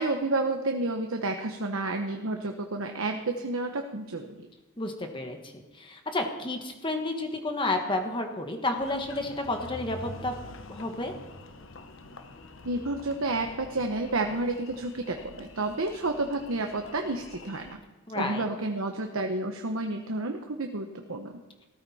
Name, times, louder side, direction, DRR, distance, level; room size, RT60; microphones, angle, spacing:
voice 1, 0.0-4.4 12.6-17.8 18.1-21.4, right 2 dB, 80° right, 5 dB, 1.1 m, -30 dB
voice 2, 4.8-10.4 10.7-11.1 18.1-18.5, left 2 dB, 25° left, 4 dB, 1.3 m, -31 dB
Engine, 8.8-17.7, left 2 dB, 65° left, 1.1 m, -46 dB
17.0 x 14.0 x 4.3 m, 1.2 s
head